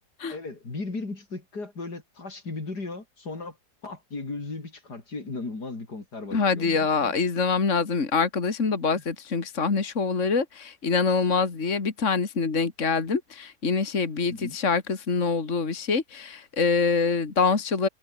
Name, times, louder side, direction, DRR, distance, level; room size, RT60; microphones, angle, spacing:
voice 1, 0.3-3.6 3.8-7.1 8.9-9.0 14.3-14.6, left 3 dB, 80° left, 4.9 m, -36 dB
voice 2, 6.3-17.9, left 4 dB, 50° left, 2.6 m, -25 dB
omnidirectional pair, 1.7 m